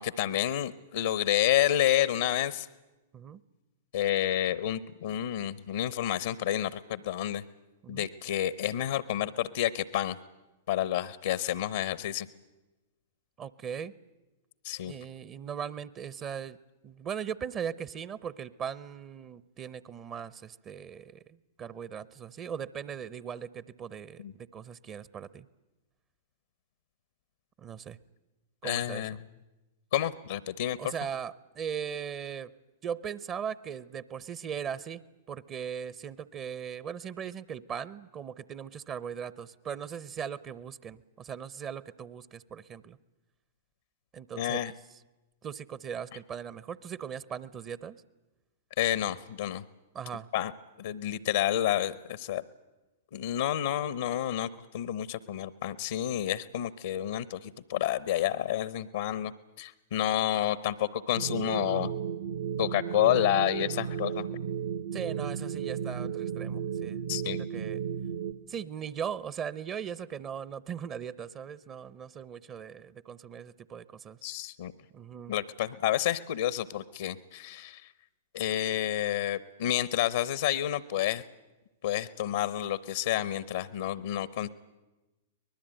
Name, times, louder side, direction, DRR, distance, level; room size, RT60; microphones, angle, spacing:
voice 1, 0.0-2.7 3.9-7.4 7.9-10.2 10.7-12.3 14.6-14.9 24.2-24.3 28.6-29.1 29.9-30.8 44.4-44.7 48.8-49.6 50.3-50.5 50.8-52.4 53.1-59.3 59.6-61.9 62.6-64.3 67.1-67.4 74.2-74.7 75.3-77.9 78.3-81.2 81.8-84.5, left 12 dB, 70° left, 18 dB, 0.8 m, -29 dB
voice 2, 13.4-13.9 14.9-16.6 16.8-25.5 27.6-28.0 28.6-29.2 30.8-32.5 32.8-43.0 44.1-45.0 45.4-48.0 49.9-50.3 64.9-67.0 67.3-67.8 68.5-74.2 74.9-75.3, right 8 dB, 30° right, 19 dB, 0.8 m, -39 dB
sound 1, 61.1-68.3, right 8 dB, 65° right, 1.3 m, -34 dB
23.5 x 20.0 x 9.1 m, 1.1 s
hypercardioid pair, 105°, 0 cm